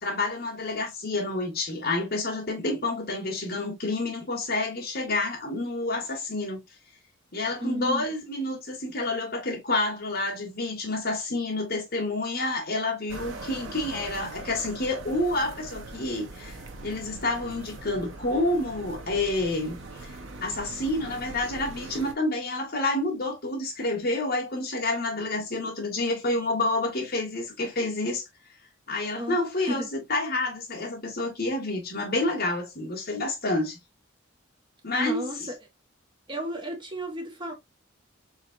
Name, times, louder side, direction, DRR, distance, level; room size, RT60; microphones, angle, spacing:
voice 1, 0.0-6.6 7.3-16.6 16.8-28.2 28.9-33.8 34.8-35.3, left 2 dB, 50° left, 2.1 m, -29 dB
voice 2, 7.6-8.1 29.1-29.9 34.9-35.5 36.3-37.5, equal, 25° right, 1.3 m, -33 dB
sound 1, 13.1-22.1, right 2 dB, 70° right, 0.9 m, -41 dB
4.7 x 3.5 x 2.6 m
head